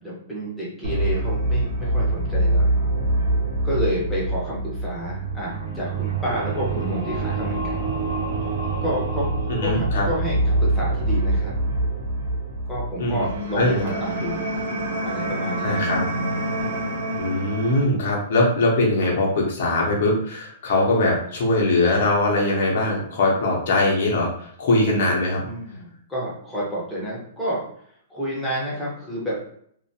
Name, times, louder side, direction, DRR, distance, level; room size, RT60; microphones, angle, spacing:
voice 1, 0.0-2.7 3.6-7.8 8.8-9.3 9.6-11.5 12.7-14.5 15.0-15.8 25.4-27.6 28.1-29.3, equal, 5° left, -7 dB, 0.6 m, -29 dB
sound 1, 0.8-17.8, right 2 dB, 75° right, 0.7 m, -25 dB
voice 2, 9.5-10.1 13.0-13.3 13.5-13.8 15.6-16.0 17.2-25.4, left 2 dB, 45° left, -3 dB, 0.6 m, -21 dB
2.4 x 2.1 x 2.6 m, 0.65 s
hypercardioid pair, 180°, 0 cm